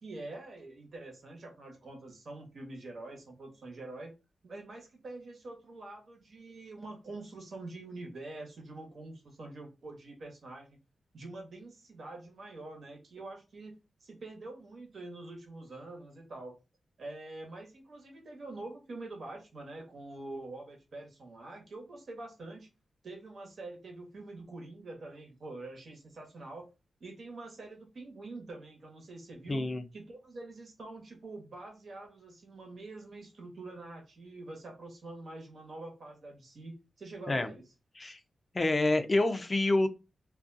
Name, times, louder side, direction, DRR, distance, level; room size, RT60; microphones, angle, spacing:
voice 1, 0.0-4.1 4.4-10.8 11.1-13.7 14.0-16.6 17.0-22.7 23.0-26.7 27.0-29.6 29.9-37.6 38.0-38.2, right 2 dB, 65° right, 1.1 m, -45 dB
voice 2, 29.5-29.8 37.3-37.5 38.0-38.2 38.5-39.9, left 2 dB, 35° left, 0.4 m, -27 dB
2.5 x 2.3 x 2.5 m
cardioid pair, 70°, 0 cm